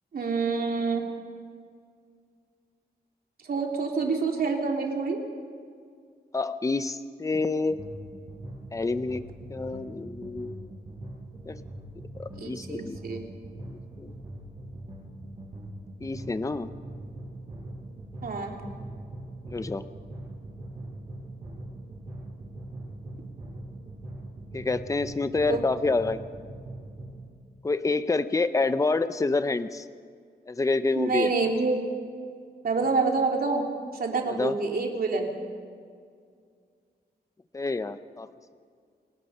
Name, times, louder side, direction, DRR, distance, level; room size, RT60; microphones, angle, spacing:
voice 1, 0.1-1.0 3.5-5.2 12.4-13.3 18.2-18.6 25.5-25.9 30.9-31.8 32.6-33.7 33.9-35.3, right 4 dB, 60° right, 1 dB, 3.1 m, -27 dB
voice 2, 6.3-7.8 8.7-10.7 11.5-11.6 12.2-13.0 13.7-14.1 16.0-16.7 19.5-19.8 24.5-26.2 27.6-29.8 30.5-31.3 34.3-34.5 37.5-38.3, left 3 dB, 20° left, 12 dB, 0.6 m, -28 dB
sound 1, 7.7-27.3, right 1 dB, 30° right, 7.7 m, -42 dB
29.0 x 17.5 x 5.7 m, 2.1 s
wide cardioid pair, 150°, 17 cm